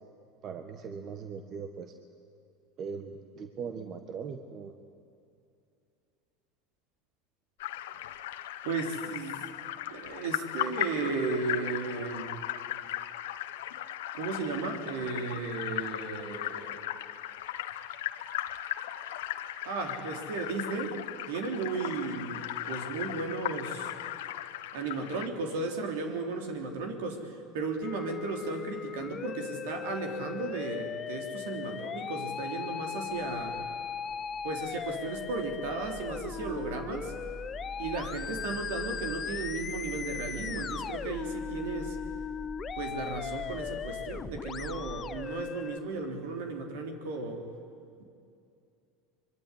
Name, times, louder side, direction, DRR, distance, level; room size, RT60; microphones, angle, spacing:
voice 1, 0.4-1.9 2.8-4.7, right 6 dB, 45° right, 6 dB, 1.6 m, -40 dB
sound 1, 7.6-25.3, left 13 dB, 75° left, 1.2 m, -37 dB
voice 2, 8.4-9.5 9.9-12.3 14.1-16.9 19.7-21.0 21.3-23.9 24.7-33.6 34.4-37.1 37.8-42.0 42.8-47.5, right 3 dB, 70° right, 4 dB, 3.7 m, -35 dB
Musical instrument, 27.8-45.8, left 7 dB, 35° left, 0.9 m, -38 dB
sound 2, 33.9-45.3, right 1 dB, 25° right, 4.2 m, -46 dB
24.5 x 23.5 x 9.9 m, 2.5 s
hypercardioid pair, 85°, 0 cm